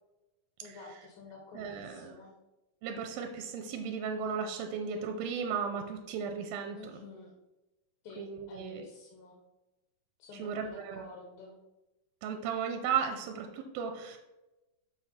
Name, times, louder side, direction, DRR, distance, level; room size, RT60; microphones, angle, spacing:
voice 1, 0.6-2.4 6.8-7.3 8.0-9.4 10.2-11.6, left 3 dB, 90° left, -1 dB, 3.0 m, -50 dB
voice 2, 1.5-2.1 2.8-7.0 8.2-8.8 10.3-11.0 12.2-14.2, right 6 dB, 90° right, 5 dB, 2.5 m, -35 dB
6.4 x 6.0 x 4.2 m, 1.0 s
omnidirectional pair, 4.2 m